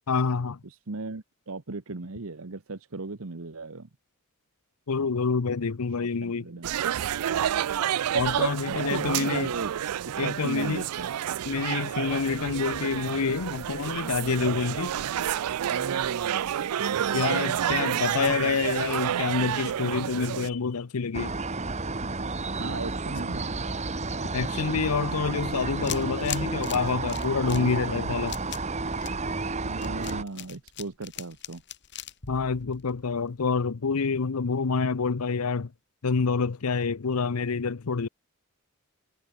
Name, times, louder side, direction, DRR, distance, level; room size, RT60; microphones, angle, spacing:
voice 1, 0.1-0.6 4.9-6.5 8.1-9.5 10.2-10.9 11.5-15.1 17.1-21.3 24.3-28.4 32.3-35.7 36.0-38.1, left 5 dB, 80° left, 0.7 m, -27 dB
voice 2, 0.6-3.9 6.0-6.9 8.7-9.7 10.1-11.1 15.7-18.0 22.6-23.5 27.6-28.1 29.6-31.6, right 3 dB, 65° right, 1.1 m, -37 dB
sound 1, 6.6-20.5, right 10 dB, 90° right, 0.4 m, -29 dB
sound 2, 21.1-30.2, right 3 dB, 30° right, 1.6 m, -31 dB
sound 3, 25.5-33.3, left 12 dB, 50° left, 3.3 m, -40 dB
head